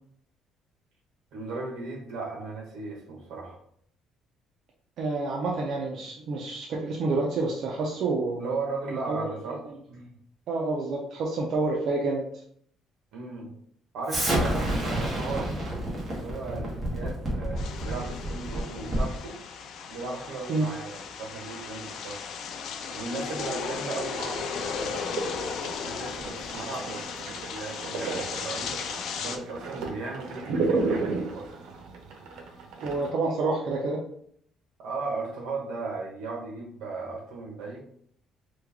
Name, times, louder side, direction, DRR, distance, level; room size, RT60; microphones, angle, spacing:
voice 1, 1.3-3.6 8.4-9.6 9.9-10.1 13.1-13.5 13.9-15.6 16.2-19.4 19.9-22.2 22.9-25.3 25.8-28.7 29.2-31.5 34.8-37.8, right 3 dB, 75° right, -1 dB, 1.0 m, -36 dB
voice 2, 5.0-8.4 9.1-9.3 10.5-12.2 20.5-20.7 32.8-34.0, right 3 dB, 50° right, -2 dB, 0.5 m, -28 dB
Explosion, 14.1-19.2, right 1 dB, 25° right, 1.0 m, -29 dB
sound 1, 17.6-29.4, left 6 dB, 55° left, 0.3 m, -36 dB
sound 2, 24.5-33.1, right 3 dB, 90° right, 0.6 m, -34 dB
3.1 x 2.3 x 3.5 m, 0.66 s
cardioid pair, 170°, 0 cm